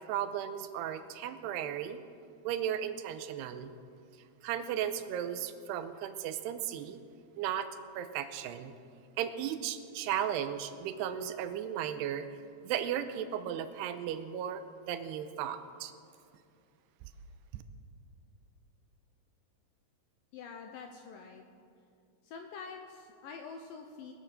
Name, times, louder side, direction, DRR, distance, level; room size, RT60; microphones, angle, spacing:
voice 1, 0.1-2.0 2.4-3.7 4.4-7.0 7.4-7.7 8.0-8.7 9.2-12.3 12.6-15.9, right 10 dB, 85° right, 10 dB, 2.7 m, -35 dB
voice 2, 20.3-21.4 22.2-24.1, left 5 dB, 80° left, 4 dB, 2.1 m, -46 dB
21.5 x 7.5 x 6.4 m, 2.4 s
omnidirectional pair, 4.8 m